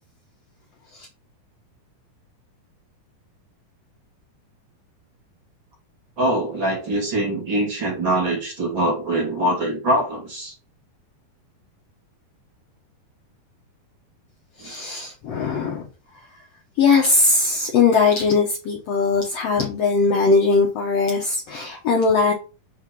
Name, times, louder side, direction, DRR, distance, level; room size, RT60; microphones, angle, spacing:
voice 1, 6.2-10.5 14.6-14.7, right 1 dB, 35° right, 2.6 m, -23 dB
voice 2, 14.6-15.9 16.8-22.3, left 4 dB, 85° left, 1.4 m, -20 dB
5.5 x 3.7 x 5.9 m
omnidirectional pair, 4.2 m